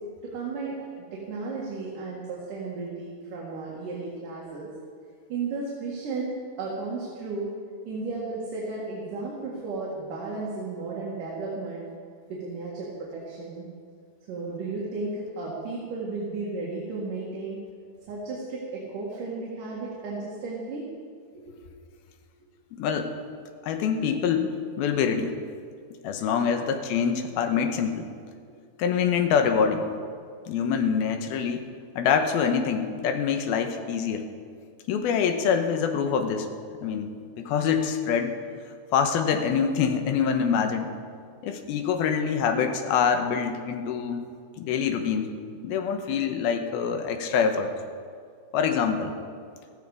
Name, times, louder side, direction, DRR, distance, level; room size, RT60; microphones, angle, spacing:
voice 1, 0.2-4.7 5.3-6.3 6.6-7.5 7.8-11.8 12.3-13.7 14.3-17.6 18.1-20.9 21.5-21.6 26.4-26.5 27.5-27.6, right 3 dB, 60° right, -5 dB, 3.3 m, -34 dB
voice 2, 22.7-23.1 23.6-25.4 26.0-28.1 28.8-29.9 30.5-31.7 32.0-34.3 34.9-36.5 36.8-38.3 38.9-40.9 41.4-44.2 44.6-45.3 45.6-47.7 48.5-49.2, left 7 dB, 75° left, 6 dB, 2.8 m, -25 dB
15.0 x 15.0 x 5.0 m, 2.2 s
omnidirectional pair, 4.6 m